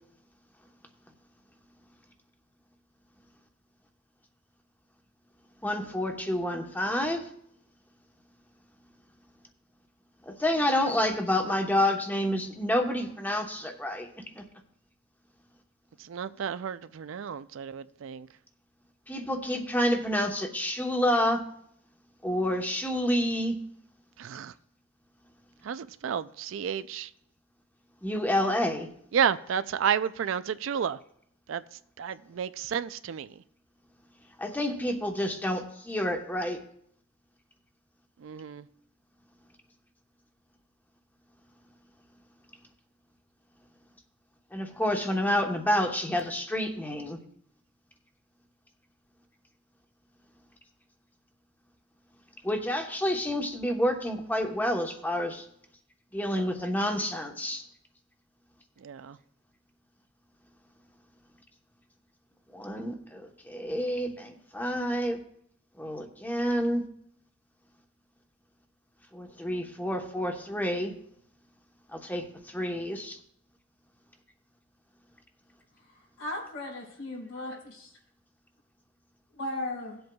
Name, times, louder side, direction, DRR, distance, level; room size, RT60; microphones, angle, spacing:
voice 1, 5.6-7.3 10.3-14.1 14.3-14.5 19.1-21.4 22.2-23.6 28.0-28.9 34.4-36.6 44.5-47.2 52.4-55.4 56.1-57.6 62.5-65.2 65.8-66.8 69.1-70.9 71.9-73.2, left 1 dB, 10° left, 4 dB, 1.0 m, -29 dB
voice 2, 16.1-18.3 24.2-24.5 25.6-27.1 29.1-31.0 31.5-31.6 32.0-33.3 38.2-38.6 58.8-59.2, right 8 dB, 70° right, 14 dB, 0.4 m, -31 dB
voice 3, 75.8-77.9 79.3-80.0, left 1 dB, 80° left, -3 dB, 4.0 m, -37 dB
18.0 x 7.8 x 2.3 m, 0.69 s
head